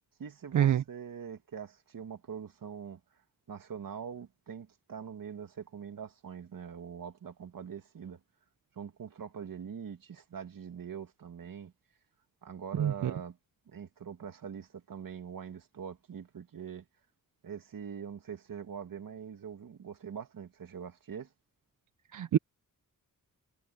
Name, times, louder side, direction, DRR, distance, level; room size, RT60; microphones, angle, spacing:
voice 1, 0.2-3.0 3.5-8.2 8.7-11.7 12.4-13.4 13.7-16.9 17.4-21.3, right 7 dB, 80° right, 2.4 m, -43 dB
voice 2, 12.8-13.1 22.1-22.4, right 10 dB, 65° right, 0.5 m, -26 dB
wide cardioid pair, 170°, 33 cm